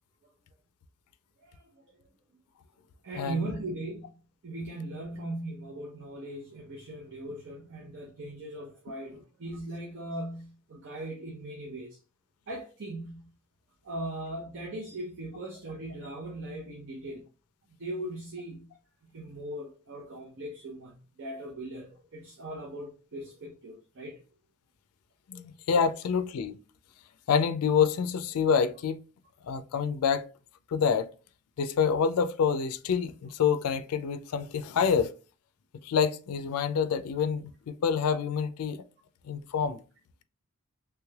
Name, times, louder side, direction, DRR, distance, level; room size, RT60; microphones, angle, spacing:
voice 1, 1.4-1.8 3.0-4.2 4.4-12.0 12.5-13.3 13.8-17.3 17.8-18.7 19.0-24.2 25.3-25.4, right 1 dB, 60° right, 0.7 m, -39 dB
voice 2, 3.2-3.5 25.3-26.6 27.3-29.0 29.4-30.3 30.7-31.1 31.6-35.1 35.8-38.8 39.2-39.8, left 6 dB, 90° left, 0.4 m, -27 dB
3.2 x 3.1 x 2.3 m
head